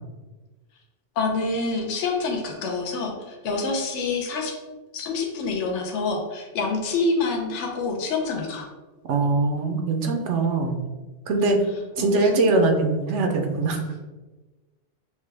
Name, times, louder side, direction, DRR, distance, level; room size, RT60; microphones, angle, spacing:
voice 1, 1.2-4.5 4.9-8.7 12.0-12.3, left 3 dB, 75° left, 0 dB, 1.1 m, -27 dB
voice 2, 9.0-10.8 11.3-11.6 12.0-13.8, right 3 dB, 80° right, 4 dB, 1.0 m, -22 dB
6.0 x 2.2 x 3.3 m, 1.2 s
omnidirectional pair, 1.2 m